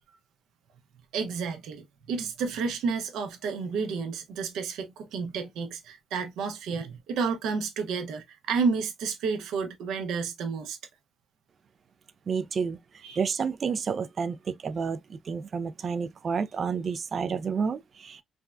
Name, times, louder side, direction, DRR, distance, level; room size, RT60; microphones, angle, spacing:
voice 1, 1.1-10.8 13.0-13.3, right 5 dB, 85° right, 0.7 m, -31 dB
voice 2, 12.3-12.8 13.2-18.2, right 6 dB, 45° right, 0.3 m, -30 dB
3.5 x 2.1 x 2.3 m
cardioid pair, 90°, 0 cm